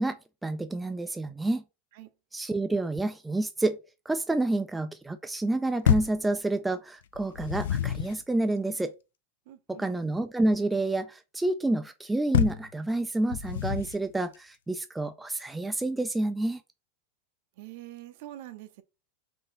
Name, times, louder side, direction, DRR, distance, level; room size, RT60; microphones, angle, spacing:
voice 1, 0.0-1.6 2.3-3.8 4.1-8.9 9.7-16.6, right 2 dB, 5° right, 0.3 m, -29 dB
sound 1, 5.8-6.2 7.1-8.2 12.3-12.7 13.3-14.0, left 9 dB, 90° left, 0.4 m, -27 dB
voice 2, 9.5-9.9 17.6-18.8, right 14 dB, 60° right, 0.6 m, -45 dB
3.8 x 2.7 x 3.9 m
supercardioid pair, 145°, 0 cm